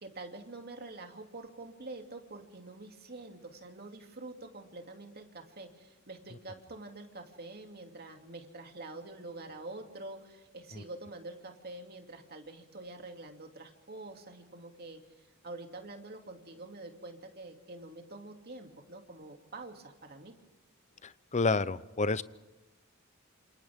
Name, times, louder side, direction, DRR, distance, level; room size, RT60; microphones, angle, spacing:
voice 1, 0.0-20.3, right 2 dB, 45° right, 3 dB, 2.7 m, -46 dB
voice 2, 21.3-22.2, left 3 dB, 30° left, 16 dB, 0.6 m, -28 dB
28.0 x 27.0 x 3.6 m, 1.1 s
head